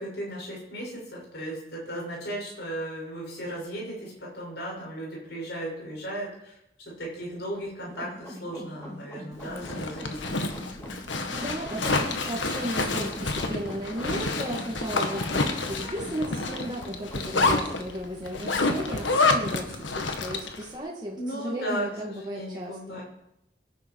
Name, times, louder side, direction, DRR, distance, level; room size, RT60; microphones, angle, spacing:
voice 1, 0.0-6.6 6.8-10.5 21.2-23.0, right 1 dB, 60° left, -3 dB, 6.6 m, -36 dB
sound 1, 7.9-17.9, equal, 15° left, 2.5 m, -43 dB
Zipper (clothing), 9.4-20.6, left 3 dB, 85° left, 1.7 m, -28 dB
voice 2, 11.3-23.0, equal, 20° right, -3 dB, 2.0 m, -35 dB
Female speech woman speaking / Yell, 12.5-13.3 14.0-16.8, equal, 30° left, 4.3 m, -48 dB
23.0 x 11.0 x 4.7 m, 0.84 s
head